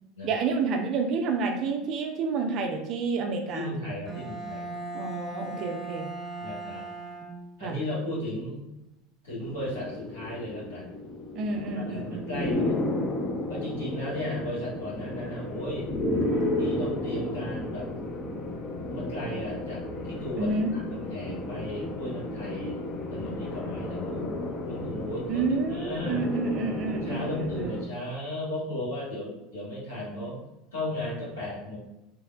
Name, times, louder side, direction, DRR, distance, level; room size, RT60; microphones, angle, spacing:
voice 1, 0.2-3.7 4.9-6.1 7.6-7.8 11.4-12.6 20.4-20.7 25.3-27.8, right 4 dB, 50° right, 3 dB, 0.5 m, -29 dB
voice 2, 3.5-4.8 6.4-6.9 7.6-8.6 9.2-11.0 11.7-12.8 13.5-15.9 16.6-17.9 18.8-22.8 23.1-25.4 25.7-26.2 26.9-30.4 30.7-31.8, left 1 dB, 85° left, -7 dB, 1.3 m, -35 dB
Bowed string instrument, 4.1-7.8, right 2 dB, 15° right, 0.7 m, -38 dB
sound 1, 9.4-27.8, left 1 dB, 35° left, 0.5 m, -33 dB
3.3 x 2.1 x 2.2 m, 0.93 s
hypercardioid pair, 80°, 0 cm